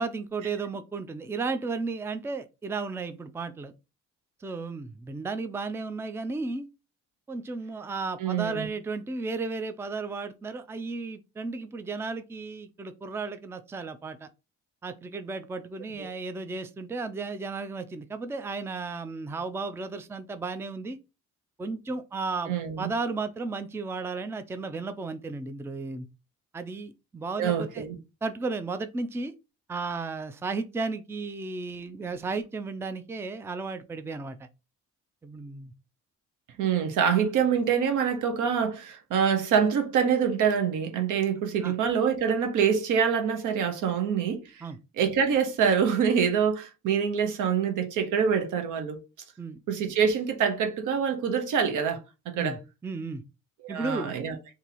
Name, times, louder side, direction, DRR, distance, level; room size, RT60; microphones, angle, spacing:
voice 1, 0.0-3.7 4.4-6.7 7.3-14.3 14.8-21.0 21.6-26.1 26.5-27.9 28.2-29.3 29.7-34.5 35.2-35.7 41.6-41.7 44.6-44.8 49.4-49.6 52.4-53.2 53.7-54.1, right 3 dB, 10° right, 0.4 m, -34 dB
voice 2, 8.2-8.7 22.5-22.9 27.4-27.9 36.6-44.6 45.0-49.0 49.7-52.0 52.3-52.6 53.6-54.4, right 7 dB, 80° right, 0.9 m, -25 dB
2.8 x 2.7 x 4.0 m
cardioid pair, 90°, 30 cm